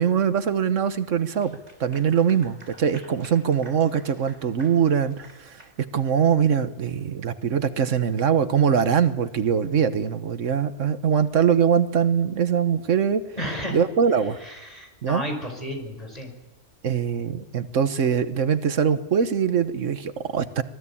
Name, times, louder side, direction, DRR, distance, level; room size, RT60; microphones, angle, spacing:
voice 1, 0.0-5.6 5.9-13.2 13.7-14.4 15.0-15.2 16.8-20.6, right 7 dB, 80° right, 11 dB, 1.4 m, -22 dB
Clapping / Applause, 1.2-6.1, right 1 dB, 60° right, 5.2 m, -50 dB
voice 2, 13.4-13.8 14.4-16.3, equal, 30° left, 3 dB, 5.7 m, -32 dB
26.0 x 20.5 x 8.6 m, 1.0 s
omnidirectional pair, 1.3 m